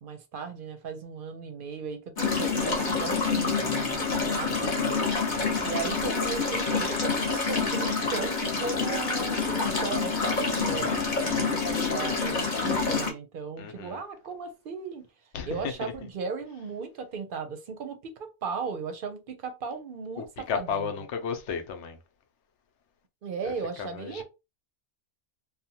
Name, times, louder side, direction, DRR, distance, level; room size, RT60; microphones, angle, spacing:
voice 1, 0.0-5.0 5.6-15.1 15.5-21.0 23.2-24.2, right 5 dB, 55° right, 0.7 m, -37 dB
sound 1, 2.2-13.1, left 4 dB, 45° left, 0.8 m, -27 dB
voice 2, 5.3-5.7 10.5-11.0 13.6-14.0 15.3-15.9 20.2-22.0 23.4-23.5 23.8-24.2, left 6 dB, 80° left, 0.9 m, -34 dB
2.7 x 2.1 x 2.7 m
omnidirectional pair, 1.2 m